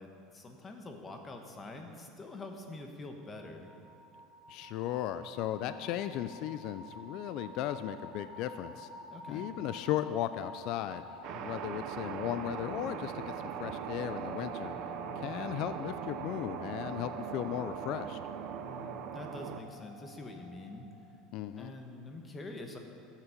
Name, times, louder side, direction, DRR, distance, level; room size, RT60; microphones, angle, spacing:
voice 1, 0.0-3.7 9.1-9.5 15.1-15.4 18.6-20.9 21.6-22.8, left 2 dB, 20° left, 4 dB, 1.1 m, -46 dB
sound 1, 3.2-21.1, equal, ahead, 3.2 m, -49 dB
voice 2, 4.5-8.9 9.3-11.0 11.3-13.3 13.6-14.7 15.2-18.2 21.3-21.7, left 12 dB, 55° left, 11 dB, 0.4 m, -36 dB
sound 2, 11.2-19.6, right 9 dB, 50° right, 0.5 m, -41 dB
14.0 x 7.3 x 5.1 m, 2.6 s
supercardioid pair, 145°, 0 cm